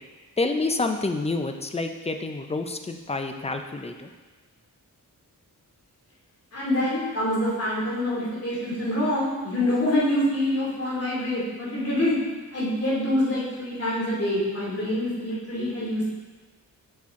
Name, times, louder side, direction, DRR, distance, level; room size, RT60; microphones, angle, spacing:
voice 1, 0.4-4.1, left 3 dB, 20° left, 6 dB, 0.5 m, -28 dB
voice 2, 6.5-12.2 12.5-16.1, left 1 dB, 45° left, -7 dB, 2.6 m, -26 dB
7.6 x 6.2 x 3.7 m, 1.3 s
wide cardioid pair, 145°, 34 cm